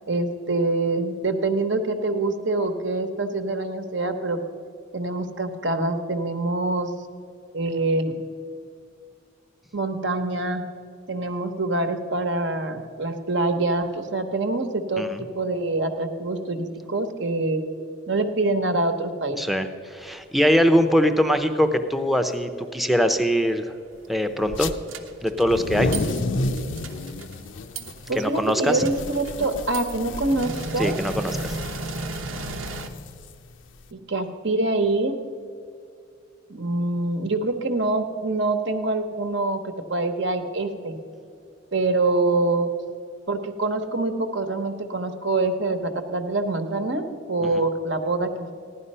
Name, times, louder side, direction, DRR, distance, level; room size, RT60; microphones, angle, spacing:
voice 1, 0.1-4.4 4.9-6.9 7.5-8.2 9.7-10.6 11.1-17.6 18.1-19.4 28.1-31.0 33.9-35.1 36.5-40.9 41.7-42.7 43.3-48.5, right 2 dB, 60° right, 7 dB, 1.1 m, -25 dB
voice 2, 19.4-23.7 24.1-24.7 25.2-26.0 28.2-28.9 30.7-31.5, equal, ahead, 8 dB, 0.6 m, -22 dB
sound 1, 24.5-24.7 25.3-33.8, left 2 dB, 65° left, 0.6 m, -32 dB
sound 2, 24.9-25.5 25.9-26.2 26.6-27.4 27.8-28.1 28.4-28.5 28.8-30.0 30.3-32.9, right 2 dB, 85° right, 1.1 m, -33 dB
15.5 x 11.0 x 5.5 m, 2.4 s
head